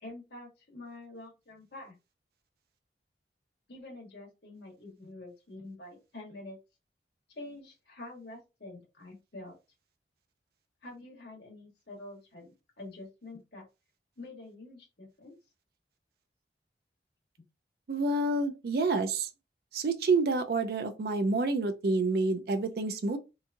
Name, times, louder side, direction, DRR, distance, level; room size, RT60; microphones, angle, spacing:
voice 1, 0.0-1.9 3.7-6.6 7.3-9.5 10.8-13.6 14.2-15.4, left 2 dB, 70° left, 1.2 m, -47 dB
voice 2, 17.9-19.3 19.7-23.2, right 3 dB, 60° right, 0.4 m, -28 dB
2.8 x 2.3 x 2.5 m
head